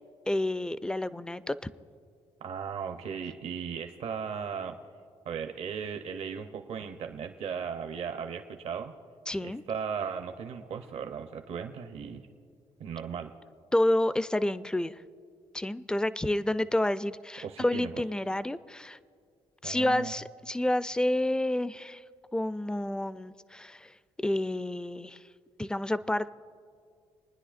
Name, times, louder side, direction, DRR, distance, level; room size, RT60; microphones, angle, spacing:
voice 1, 0.3-1.6 9.3-9.6 13.7-15.0 15.5-19.0 19.6-22.0 22.3-25.2 25.6-26.3, left 1 dB, 5° left, 15 dB, 0.3 m, -29 dB
voice 2, 2.4-4.8 5.2-8.9 9.4-12.3 12.8-13.3 17.4-17.9 19.6-20.1, right 7 dB, 65° right, 6 dB, 0.7 m, -36 dB
29.5 x 9.8 x 2.5 m, 2.2 s
cardioid pair, 80°, 11 cm